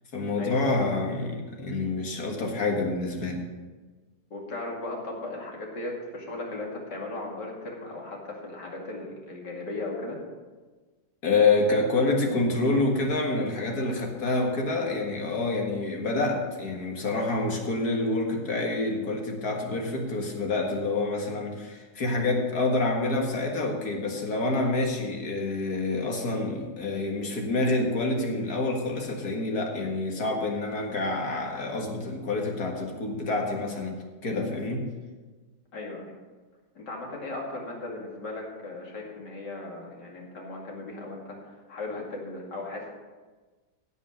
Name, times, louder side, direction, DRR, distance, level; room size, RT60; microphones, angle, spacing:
voice 1, 0.1-3.5 11.2-34.0 34.2-34.9, left 2 dB, 65° left, 1 dB, 2.2 m, -27 dB
voice 2, 4.3-10.2 35.7-36.2 36.7-42.9, left 2 dB, 90° left, -1 dB, 3.0 m, -37 dB
16.5 x 5.5 x 6.4 m, 1.3 s
omnidirectional pair, 1.8 m